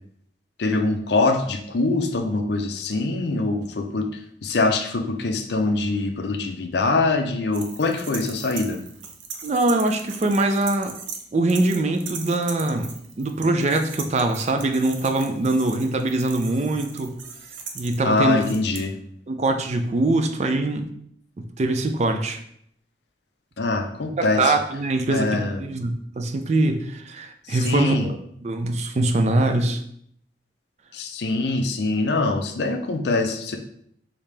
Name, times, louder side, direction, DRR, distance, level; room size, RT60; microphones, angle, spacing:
voice 1, 0.6-4.1 4.4-8.8 18.0-19.0 23.6-24.6 25.1-25.7 27.5-28.1 30.9-33.6, left 3 dB, 65° left, 5 dB, 0.5 m, -23 dB
sound 1, 7.5-11.2 11.5-18.8, right 6 dB, 85° right, 0.6 m, -38 dB
voice 2, 9.4-11.0 11.3-12.9 13.2-17.2 17.7-18.4 19.3-20.9 21.4-22.4 24.2-29.8, right 2 dB, 35° right, 7 dB, 0.4 m, -23 dB
5.0 x 2.8 x 3.3 m, 0.68 s
head